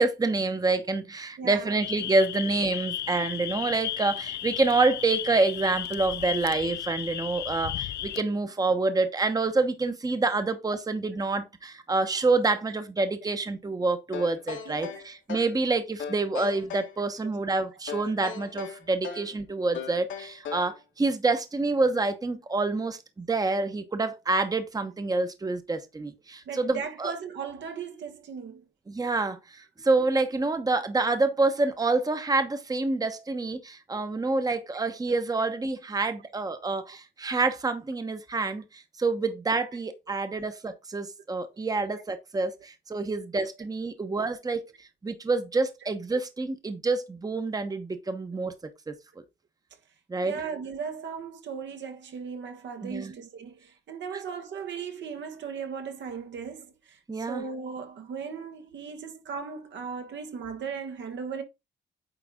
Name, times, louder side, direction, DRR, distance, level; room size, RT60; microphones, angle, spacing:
voice 1, 0.0-27.1 28.9-48.5 48.9-49.0 50.1-50.4 52.8-53.1 57.1-57.4, right 3 dB, 20° right, 1.0 m, -27 dB
voice 2, 1.4-1.8 14.6-15.0 17.2-17.3 26.4-28.6 41.9-42.0 46.1-46.2 50.2-61.4, right 6 dB, 65° right, 1.4 m, -37 dB
sound 1, 1.8-8.2, left 13 dB, 60° left, 0.4 m, -34 dB
sound 2, 14.1-15.6 16.0-17.0 17.9-19.3 19.7-20.8, left 7 dB, 75° left, 1.8 m, -38 dB
9.0 x 3.9 x 3.7 m
cardioid pair, 90°, 20 cm